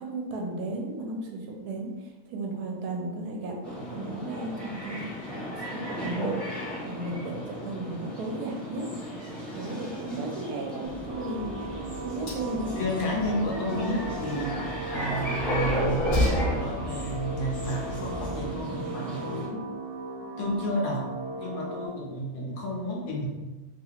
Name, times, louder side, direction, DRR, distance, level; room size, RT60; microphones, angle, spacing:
voice 1, 0.0-5.1 5.5-6.4 6.8-8.9 9.6-11.6 12.0-12.8 13.7-14.0 19.4-19.7, right 2 dB, 85° right, 1 dB, 1.2 m, -35 dB
sound 1, 3.6-19.5, equal, ahead, 0.9 m, -35 dB
Train, 10.9-18.6, equal, 50° left, 0.6 m, -34 dB
sound 2, 11.1-21.9, right 2 dB, 35° right, 0.4 m, -38 dB
voice 2, 12.7-14.6 14.9-19.5 20.4-21.1 21.3-23.3, equal, 70° left, -3 dB, 1.1 m, -31 dB
3.0 x 2.8 x 2.4 m, 1.2 s
omnidirectional pair, 1.6 m